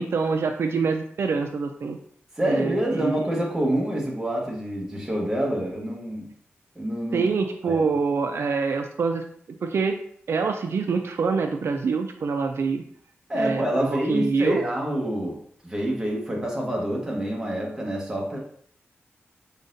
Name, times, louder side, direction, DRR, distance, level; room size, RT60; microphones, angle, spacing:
voice 1, 0.0-2.0 2.4-3.3 7.1-9.2 9.6-10.0 10.3-12.8 13.3-14.6, right 4 dB, 70° right, 5 dB, 0.4 m, -25 dB
voice 2, 2.3-6.3 6.7-7.3 7.6-7.8 13.3-15.4 15.6-18.4, right 1 dB, 10° right, -2 dB, 1.1 m, -27 dB
5.0 x 3.9 x 2.6 m, 0.62 s
wide cardioid pair, 135°, 4 cm